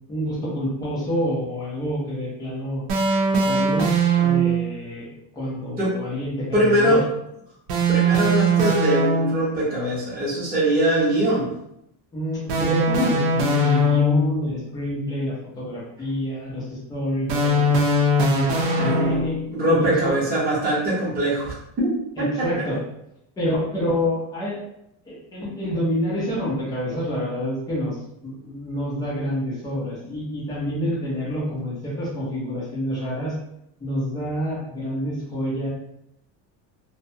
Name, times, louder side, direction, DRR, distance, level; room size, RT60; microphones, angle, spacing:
voice 1, 0.1-2.8 3.5-5.1 5.3-7.0 12.1-17.6 18.3-18.5 18.8-19.4 19.7-20.2 22.2-22.8 23.4-24.6 25.1-28.0 28.2-33.3 33.8-35.7, equal, 10° left, -7 dB, 0.4 m, -27 dB
sound 1, 2.9-4.7 7.7-9.6 12.5-14.4 17.3-19.5, right 1 dB, 60° right, 0.6 m, -20 dB
voice 2, 6.5-7.1 7.9-11.5 18.8-22.5, right 1 dB, 20° right, -7 dB, 0.7 m, -22 dB
2.6 x 2.1 x 2.6 m, 0.79 s
cardioid pair, 175°, 48 cm